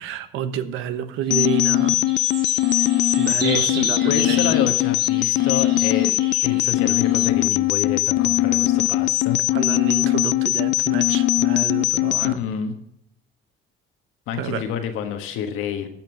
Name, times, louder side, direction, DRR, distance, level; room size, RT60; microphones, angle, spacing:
voice 1, 0.0-2.0 3.2-4.6 9.5-12.4 14.4-14.6, right 9 dB, 85° right, 12 dB, 0.9 m, -29 dB
sound 1, 1.3-12.3, left 15 dB, 65° left, 0.4 m, -20 dB
sound 2, 1.3-7.3, right 4 dB, 55° right, 3.9 m, -34 dB
voice 2, 3.2-6.1 6.4-9.4 12.1-12.8 14.3-15.9, left 8 dB, 85° left, 6 dB, 1.5 m, -28 dB
12.0 x 6.0 x 7.3 m, 0.72 s
supercardioid pair, 75°, 20 cm